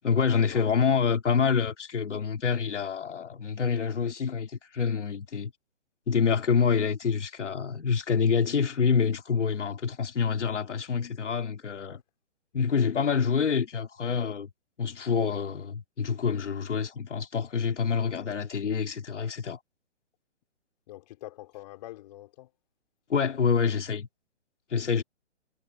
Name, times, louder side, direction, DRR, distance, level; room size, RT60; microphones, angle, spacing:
voice 1, 0.0-5.5 6.1-12.0 12.5-14.5 14.8-19.6 23.1-24.1 24.7-25.0, left 6 dB, 80° left, 3.4 m, -27 dB
voice 2, 20.9-22.5 24.9-25.0, left 15 dB, 35° left, 5.0 m, -45 dB
hypercardioid pair, 155°, 35 cm